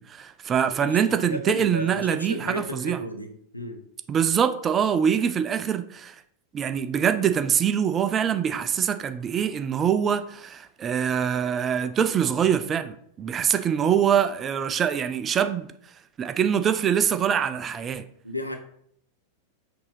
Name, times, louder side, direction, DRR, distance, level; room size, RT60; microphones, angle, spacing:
voice 1, 0.0-3.0 4.1-6.2 6.5-15.7 16.2-18.0, right 8 dB, 25° right, 0.3 m, -24 dB
voice 2, 0.6-3.8 18.2-18.6, left 1 dB, 85° left, 0.5 m, -34 dB
5.9 x 2.7 x 3.1 m
figure-of-eight pair, 90°, 0 cm